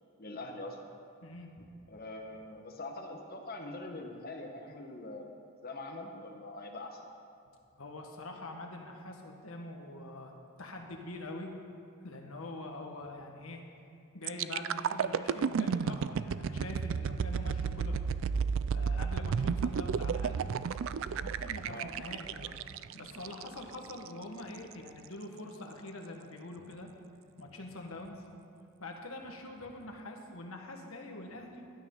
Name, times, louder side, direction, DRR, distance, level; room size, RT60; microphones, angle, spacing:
voice 1, 0.2-0.8 1.9-5.4 5.6-7.0 21.7-21.9, left 2 dB, 45° left, 2 dB, 1.4 m, -43 dB
voice 2, 1.2-1.7 7.8-10.3 10.6-11.6 12.0-13.6 14.1-18.0 18.7-20.4 21.1-22.6 22.9-26.9 27.4-28.2 28.8-31.7, left 2 dB, 70° left, 2 dB, 1.6 m, -44 dB
sound 1, 14.2-24.1 24.5-24.7, right 6 dB, 60° right, 0.3 m, -32 dB
15.5 x 12.0 x 3.9 m, 2.5 s
head